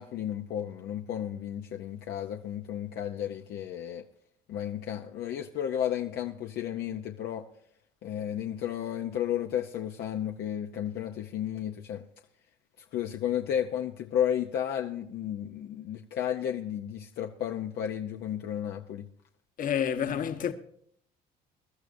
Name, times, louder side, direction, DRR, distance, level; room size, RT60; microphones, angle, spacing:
voice 1, 0.0-4.0 4.5-7.5 8.0-12.1 12.9-19.1, left 10 dB, 70° left, 0.7 m, -33 dB
voice 2, 19.6-20.5, left 8 dB, 55° left, 1.2 m, -29 dB
22.0 x 12.5 x 2.6 m
cardioid pair, 110°, 17 cm